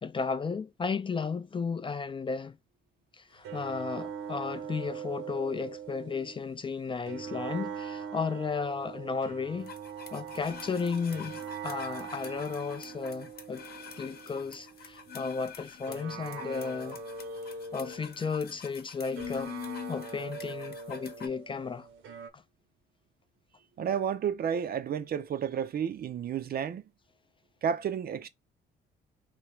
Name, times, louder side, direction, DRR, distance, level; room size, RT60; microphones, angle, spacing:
voice 1, 0.0-2.6 3.2-9.7 10.1-13.6 14.0-17.0 17.7-19.5 19.9-21.9 22.3-22.4, left 5 dB, 25° left, 0.4 m, -34 dB
sound 1, 3.4-6.5 7.1-15.4 15.9-18.4 19.1-22.3, right 6 dB, 80° right, 0.9 m, -42 dB
sound 2, 9.7-21.3, left 7 dB, 50° left, 0.9 m, -44 dB
voice 2, 23.8-26.8 27.6-28.3, right 8 dB, 50° right, 0.5 m, -31 dB
3.3 x 2.8 x 3.0 m
cardioid pair, 90°, 20 cm